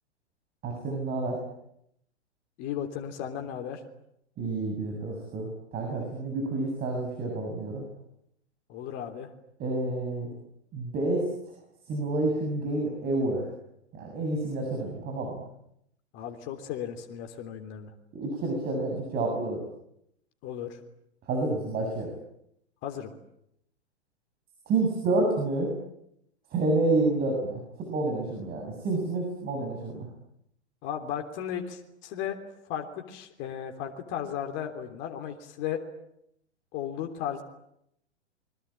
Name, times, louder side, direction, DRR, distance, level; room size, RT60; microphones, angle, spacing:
voice 1, 0.6-1.4 4.4-7.8 9.6-10.3 10.7-11.3 11.9-13.4 13.9-15.4 18.1-19.6 21.3-22.1 24.7-25.7 26.5-30.1, right 2 dB, 25° right, 1 dB, 7.1 m, -29 dB
voice 2, 2.6-3.8 8.7-9.3 16.1-17.9 20.4-20.8 22.8-23.1 30.8-32.4 32.7-35.8 36.7-37.4, left 9 dB, 35° left, 4 dB, 3.4 m, -35 dB
28.0 x 23.0 x 8.9 m, 0.76 s
figure-of-eight pair, 110°, 34 cm